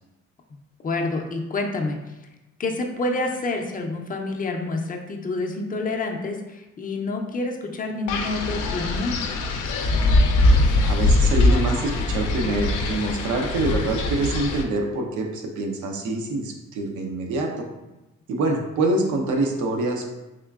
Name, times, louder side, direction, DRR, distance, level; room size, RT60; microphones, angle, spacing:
voice 1, 0.8-2.0 2.6-9.2, left 2 dB, 30° left, 2 dB, 0.5 m, -28 dB
Wind, 8.1-14.6, left 2 dB, 80° left, 0.5 m, -21 dB
voice 2, 10.9-17.5 18.3-20.1, right 2 dB, 75° right, 2 dB, 0.7 m, -25 dB
3.6 x 3.1 x 2.3 m, 1.0 s
cardioid pair, 90°, 30 cm